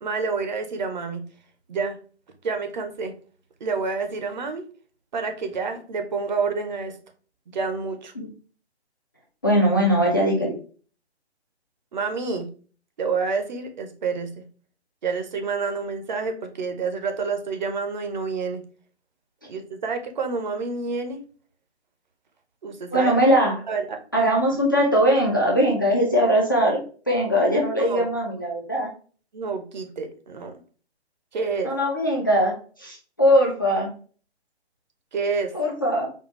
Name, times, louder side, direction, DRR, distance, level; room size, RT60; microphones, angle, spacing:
voice 1, 0.0-1.2 1.7-2.0 2.4-3.2 3.6-4.6 5.1-7.0 7.5-8.1 11.9-12.5 13.0-14.4 15.0-18.6 19.5-21.2 22.6-23.1 23.7-24.0 27.8-28.1 29.3-30.5 31.3-31.7 35.1-35.5, right 4 dB, 45° right, 6 dB, 0.6 m, -28 dB
voice 2, 9.4-10.5 22.9-23.5 24.1-26.8 27.1-28.9 31.6-33.9 35.5-36.1, equal, 20° left, -2 dB, 0.3 m, -20 dB
4.3 x 2.2 x 3.1 m, 0.40 s
figure-of-eight pair, 130°, 33 cm